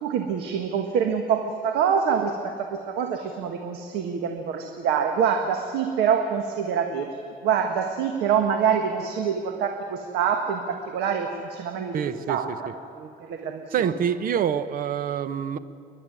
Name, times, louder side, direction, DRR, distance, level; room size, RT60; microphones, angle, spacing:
voice 1, 0.0-7.2 7.4-12.7 12.9-14.0, right 7 dB, 85° right, 5 dB, 1.7 m, -26 dB
voice 2, 11.9-12.4 13.7-15.6, right 8 dB, 55° right, 13 dB, 1.1 m, -26 dB
29.0 x 11.5 x 9.2 m, 2.7 s
cardioid pair, 110°, 17 cm